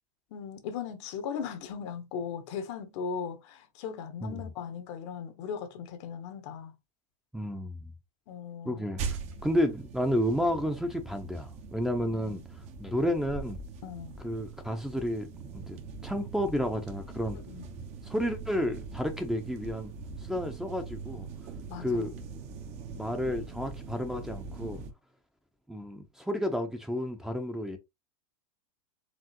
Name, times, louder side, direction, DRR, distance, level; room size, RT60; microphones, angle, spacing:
voice 1, 0.3-6.7 8.3-8.9 12.0-12.4 13.8-14.1 17.5-17.7 21.7-22.1, left 6 dB, 55° left, 1.2 m, -38 dB
voice 2, 7.3-7.9 8.6-13.6 14.2-15.3 15.5-15.8 16.0-17.4 18.0-19.9 20.2-21.3 21.8-22.2 22.9-24.8 25.7-27.8, equal, 5° right, 0.9 m, -31 dB
sound 1, 9.0-24.9, right 5 dB, 40° right, 1.1 m, -42 dB
4.6 x 3.5 x 3.0 m
hypercardioid pair, 110°, 18 cm